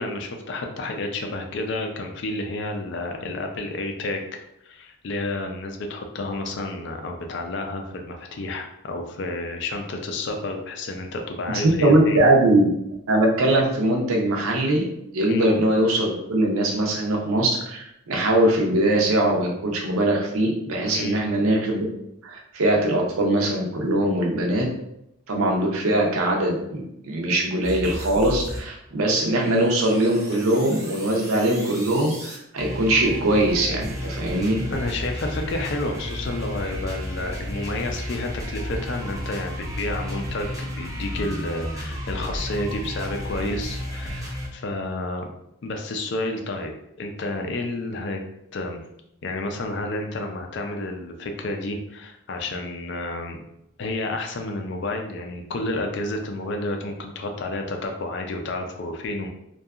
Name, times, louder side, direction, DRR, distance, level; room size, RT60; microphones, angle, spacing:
voice 1, 0.0-4.2 4.6-12.2 15.3-15.5 20.9-21.2 34.7-45.3 45.6-48.2 48.5-48.8 49.2-53.4 53.8-59.3, left 2 dB, 55° left, 3 dB, 0.3 m, -30 dB
voice 2, 11.8-12.7 13.1-14.8 15.1-21.9 22.2-24.7 25.3-34.6, right 1 dB, 80° right, 0 dB, 0.6 m, -21 dB
sound 1, 27.6-28.6 28.9-44.5, equal, 15° right, 0.4 m, -33 dB
2.7 x 2.3 x 2.3 m, 0.81 s
head